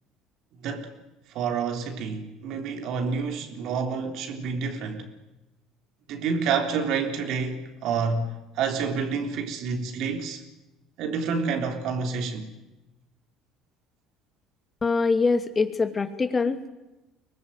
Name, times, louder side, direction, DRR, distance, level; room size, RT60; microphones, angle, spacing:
voice 1, 0.6-0.9 1.3-5.1 6.1-10.4 11.0-12.5, right 5 dB, 65° right, 3.6 m, -28 dB
voice 2, 14.8-16.7, left 4 dB, 30° left, 2.6 m, -24 dB
23.5 x 20.0 x 9.2 m
hypercardioid pair, 70°, 0 cm